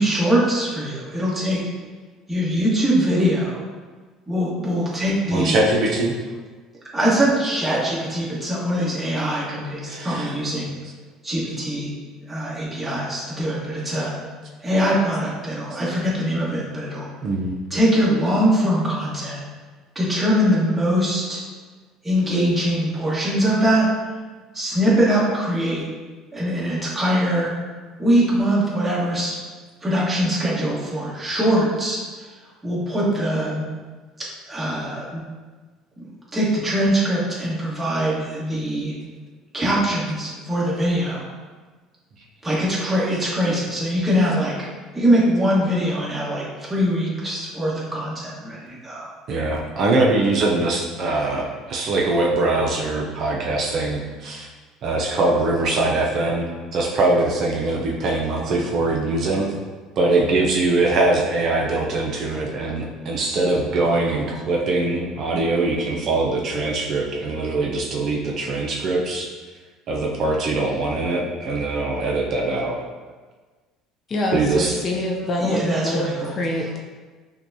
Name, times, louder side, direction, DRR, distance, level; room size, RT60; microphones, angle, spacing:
voice 1, 0.0-1.6 2.3-3.6 4.3-5.6 6.9-10.8 11.2-11.9 12.3-14.1 14.6-17.1 17.7-19.4 19.9-21.4 22.0-23.9 24.5-25.8 26.3-27.5 28.0-29.3 29.8-32.3 32.6-33.6 34.5-35.2 36.3-38.9 39.5-41.3 42.4-44.5 44.9-49.1 75.4-76.3, equal, 15° right, -7 dB, 1.5 m, -22 dB
voice 2, 5.3-6.1 9.8-10.3 17.2-17.6 49.3-54.5 54.8-56.5 56.7-59.5 60.0-69.3 69.9-72.8 74.3-74.8, right 2 dB, 55° right, -1 dB, 0.6 m, -22 dB
voice 3, 74.1-76.1 76.4-76.8, left 1 dB, 40° left, 0 dB, 0.5 m, -25 dB
5.8 x 2.3 x 2.7 m, 1.4 s
supercardioid pair, 95°, 0 cm